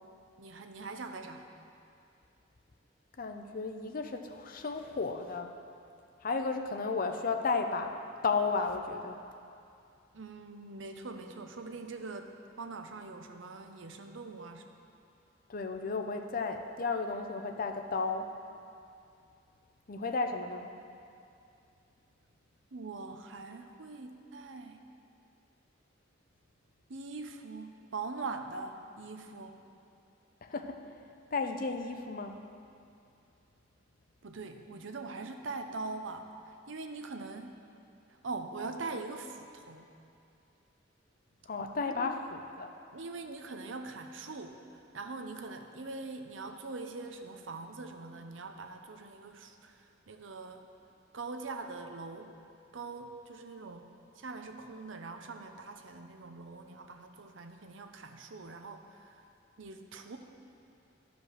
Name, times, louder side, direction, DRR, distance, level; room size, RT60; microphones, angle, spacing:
voice 1, 0.4-1.5 10.1-14.7 22.7-24.8 26.9-29.6 34.2-36.3 36.7-37.5 38.1-39.9 41.9-42.1 42.9-50.7 51.1-52.3 52.7-53.9 54.2-59.2 59.6-60.2, right 3 dB, 70° right, 6 dB, 0.7 m, -42 dB
voice 2, 3.2-5.5 6.2-7.9 8.2-9.2 15.5-18.3 19.9-20.7 30.4-30.8 31.3-32.4 41.5-42.7, left 4 dB, 45° left, 5 dB, 0.6 m, -33 dB
12.5 x 5.1 x 6.4 m, 2.5 s
head